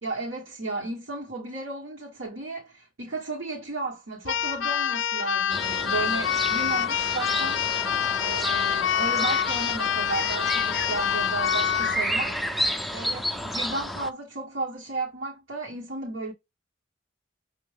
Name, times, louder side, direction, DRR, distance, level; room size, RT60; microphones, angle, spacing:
voice 1, 0.0-7.6 8.2-12.4 12.9-16.3, right 3 dB, 80° right, 1.6 m, -34 dB
Keyboard (musical), 4.3-12.0, left 8 dB, 70° left, 0.4 m, -26 dB
sound 1, 5.5-14.1, equal, ahead, 0.4 m, -31 dB
5.7 x 2.8 x 3.3 m
head